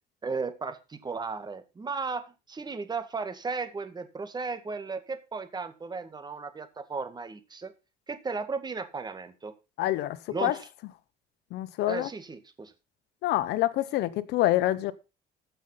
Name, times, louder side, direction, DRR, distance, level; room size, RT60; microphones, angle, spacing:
voice 1, 0.2-7.7 8.1-9.5 10.3-10.7 11.9-12.7, right 4 dB, 25° right, 1.8 m, -35 dB
voice 2, 9.8-10.6 11.5-12.1 13.2-14.9, left 15 dB, 85° left, 1.0 m, -26 dB
14.5 x 5.6 x 5.5 m
cardioid pair, 110°, 17 cm